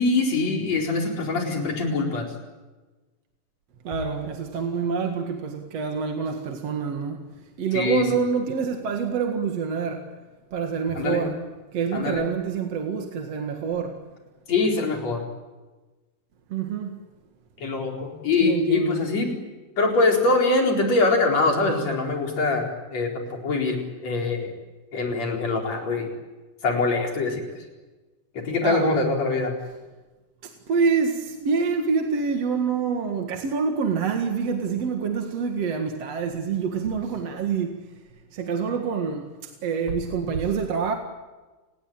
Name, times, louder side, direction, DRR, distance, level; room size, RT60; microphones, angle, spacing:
voice 1, 0.0-2.3 7.7-8.1 11.0-11.2 11.9-12.3 14.5-15.2 17.6-19.3 19.8-24.5 24.9-26.1 26.6-27.6 28.3-29.5, left 3 dB, 55° left, 5.5 m, -23 dB
voice 2, 3.8-7.2 7.6-10.1 10.5-11.4 11.7-14.0 16.5-17.0 18.4-19.0 28.6-29.0 30.4-37.9 38.3-40.9, right 5 dB, 55° right, 2.8 m, -26 dB
29.5 x 20.5 x 9.0 m
omnidirectional pair, 3.7 m